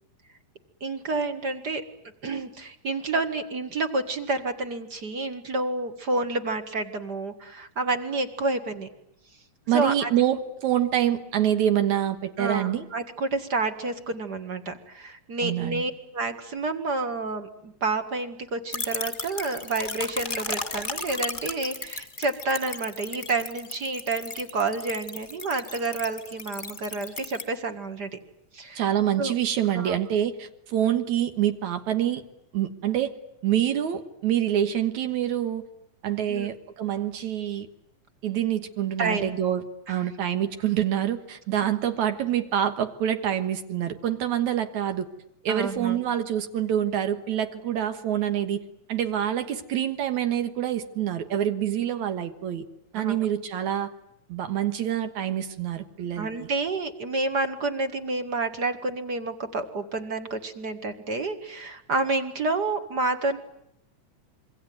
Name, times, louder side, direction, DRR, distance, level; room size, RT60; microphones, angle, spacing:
voice 1, 0.8-1.8 2.2-8.9 9.7-10.1 12.4-28.2 28.5-28.9 29.2-29.3 29.7-30.0 30.8-31.0 36.3-36.5 39.0-39.3 39.9-40.1 40.8-40.9 41.5-41.7 45.5-46.0 52.9-53.3 56.2-63.4, right 3 dB, 35° right, 8 dB, 2.0 m, -29 dB
voice 2, 9.7-12.9 15.4-15.8 28.8-32.2 32.5-33.1 33.4-35.6 36.0-37.7 38.2-39.6 39.9-45.1 45.4-48.6 48.9-52.7 52.9-53.9 54.3-56.3, right 10 dB, 70° right, 8 dB, 2.7 m, -26 dB
sound 1, 18.7-27.4, left 3 dB, 20° left, 1.7 m, -35 dB
26.5 x 23.5 x 9.4 m, 0.77 s
omnidirectional pair, 3.6 m